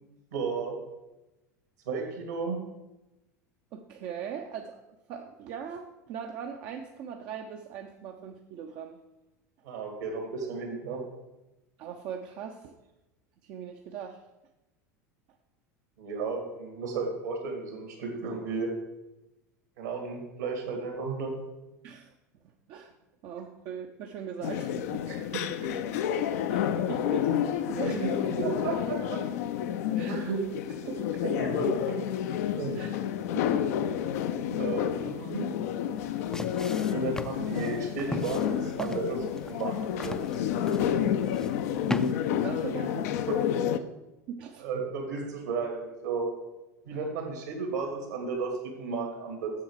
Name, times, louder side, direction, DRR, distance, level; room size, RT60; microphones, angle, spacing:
voice 1, 0.3-0.7 1.9-2.6 9.6-11.0 16.0-18.7 19.8-21.4 25.1-25.7 27.8-29.2 30.1-30.4 30.8-31.0 31.2-32.0 32.6-32.8 34.6-35.5 36.9-40.2 41.0-41.1 43.3-43.6 44.6-46.3 46.8-49.5, right 4 dB, 75° right, 2 dB, 2.7 m, -33 dB
voice 2, 3.7-4.8 5.1-9.0 11.8-12.8 13.4-14.2 21.8-22.1 22.7-22.9 23.2-25.1 26.5-28.0 30.0-30.4 32.7-32.9 33.3-33.5 34.0-34.2 42.3-43.1 44.3-44.6, right 7 dB, 50° right, 3 dB, 0.7 m, -40 dB
sound 1, 24.4-43.8, left 9 dB, 65° left, 0.5 m, -30 dB
sound 2, 36.0-42.1, left 2 dB, 5° left, 0.5 m, -38 dB
7.5 x 7.2 x 4.9 m, 0.98 s
hypercardioid pair, 80°, 9 cm